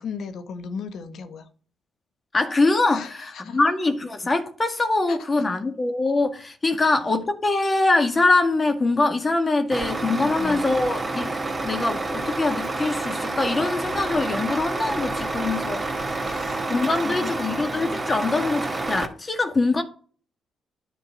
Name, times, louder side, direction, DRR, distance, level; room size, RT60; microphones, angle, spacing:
voice 1, 0.0-1.5 2.9-3.6 5.1-5.2 6.7-6.8 10.2-10.6 16.3-16.6 17.0-17.5, left 6 dB, 70° left, 1.3 m, -36 dB
voice 2, 2.3-11.4 11.6-15.8 16.7-19.8, left 3 dB, 30° left, 2.0 m, -23 dB
Truck, 9.7-19.1, right 2 dB, 25° right, 1.9 m, -28 dB
10.0 x 4.5 x 7.3 m
supercardioid pair, 55°, 0 cm